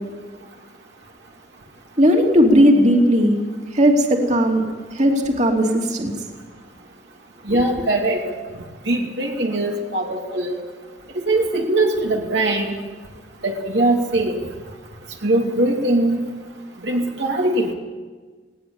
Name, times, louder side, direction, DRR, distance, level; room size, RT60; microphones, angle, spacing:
voice 1, 2.0-3.3 3.7-4.6 5.0-6.1, equal, 40° right, 1 dB, 3.0 m, -16 dB
voice 2, 7.5-8.2 8.9-10.6 11.1-12.7 13.4-14.4 15.2-16.2 16.8-17.7, right 2 dB, 70° right, 0 dB, 2.6 m, -21 dB
19.5 x 18.0 x 8.7 m, 1.4 s
head